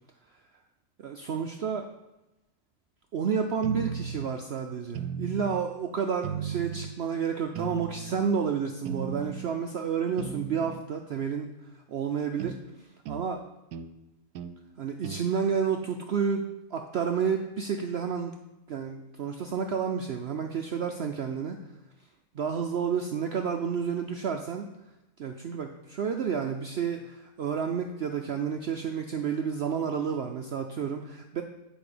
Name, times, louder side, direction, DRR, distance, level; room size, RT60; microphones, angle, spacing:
voice 1, 1.0-1.9 3.1-11.5 11.9-12.6 13.1-13.4 14.8-18.3 18.7-21.6 22.3-24.7 25.2-31.4, right 6 dB, 65° right, 4 dB, 0.6 m, -30 dB
sound 1, 3.6-4.3 4.9-5.7 6.2-6.9 7.6-8.2 8.9-9.5 10.2-10.9 12.4-12.6 13.1-13.3 13.7-13.9 14.3-14.6 15.0-15.3, right 6 dB, 85° right, 1.1 m, -36 dB
8.9 x 5.1 x 5.0 m, 0.97 s
omnidirectional pair, 1.6 m